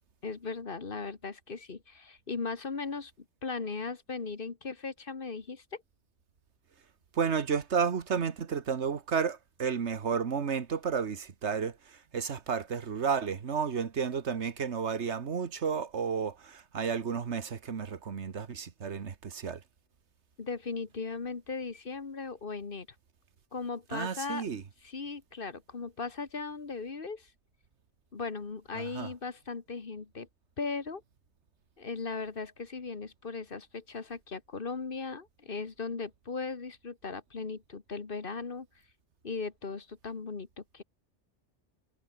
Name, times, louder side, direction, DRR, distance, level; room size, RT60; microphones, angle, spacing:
voice 1, 0.2-3.1 3.4-5.8 20.4-22.9 23.5-24.4 24.8-27.3 28.1-30.3 30.6-31.0 31.8-38.7 39.2-40.8, left 4 dB, 50° left, 1.7 m, -38 dB
voice 2, 7.1-19.6 23.9-24.6 28.7-29.1, right 6 dB, 75° right, 1.6 m, -32 dB
omnidirectional pair, 1.2 m